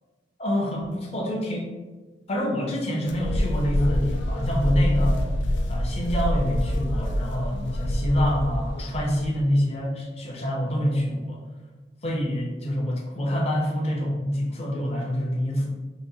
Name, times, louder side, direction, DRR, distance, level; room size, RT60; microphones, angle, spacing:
voice 1, 0.4-1.7 2.3-5.2 5.7-11.4 12.0-15.7, equal, 35° left, -2 dB, 0.7 m, -26 dB
sound 1, 3.1-9.4, equal, 85° left, 0.4 m, -26 dB
4.9 x 2.3 x 2.7 m, 1.3 s
head